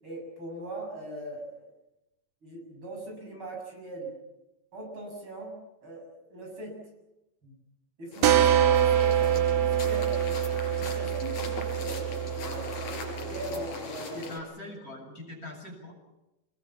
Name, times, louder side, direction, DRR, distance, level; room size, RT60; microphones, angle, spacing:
voice 1, 0.0-1.7 2.4-4.2 4.7-6.8 7.4-7.5 8.0-10.4 10.8-12.1 12.4-12.8 13.1-14.4, right 1 dB, 35° right, 1 dB, 8.0 m, -40 dB
sound 1, 8.1-14.4, left 3 dB, 65° left, 5.9 m, -40 dB
sound 2, 8.2-13.7, right 10 dB, 70° right, 3.0 m, -25 dB
voice 2, 14.1-15.9, left 2 dB, 20° left, 0 dB, 8.0 m, -42 dB
26.5 x 22.0 x 7.4 m, 0.94 s
omnidirectional pair, 4.2 m